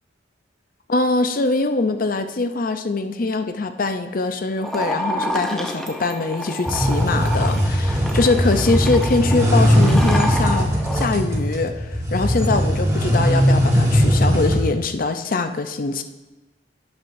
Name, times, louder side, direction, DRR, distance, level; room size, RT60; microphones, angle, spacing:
voice 1, 0.9-16.0, left 3 dB, 50° left, 8 dB, 0.6 m, -23 dB
sound 1, 4.6-11.1, equal, 5° left, 0.8 m, -29 dB
sound 2, 6.6-14.7, equal, 15° right, 1.4 m, -19 dB
11.5 x 8.8 x 2.7 m, 1.1 s
head